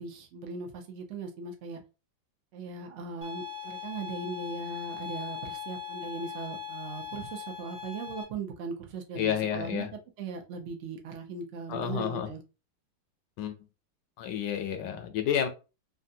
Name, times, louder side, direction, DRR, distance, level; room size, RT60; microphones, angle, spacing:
voice 1, 0.0-1.8 2.5-9.9 10.2-12.4, right 4 dB, 65° right, 3 dB, 0.7 m, -39 dB
sound 1, 3.2-8.2, left 8 dB, 40° right, 0.9 m, -40 dB
voice 2, 9.2-9.9 11.7-12.3 13.4-13.5 14.2-15.5, left 9 dB, 75° left, 6 dB, 1.1 m, -30 dB
3.3 x 2.5 x 2.6 m, 0.31 s
omnidirectional pair, 2.1 m